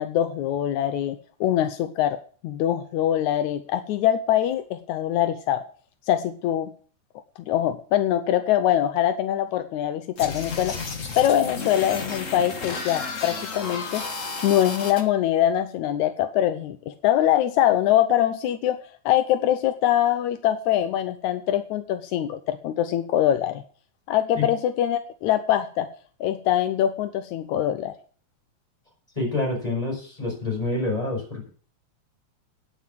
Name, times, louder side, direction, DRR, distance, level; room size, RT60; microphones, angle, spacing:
voice 1, 0.0-2.2 2.4-5.6 6.1-6.7 7.5-10.8 11.2-14.1 14.4-18.8 19.1-23.6 24.1-25.9 26.2-27.9, left 11 dB, 80° left, 10 dB, 2.1 m, -23 dB
sound 1, 10.2-15.0, left 4 dB, 40° left, 1.2 m, -32 dB
voice 2, 29.2-31.5, left 2 dB, 10° left, -1 dB, 5.7 m, -27 dB
9.8 x 7.3 x 7.7 m, 0.43 s
omnidirectional pair, 3.4 m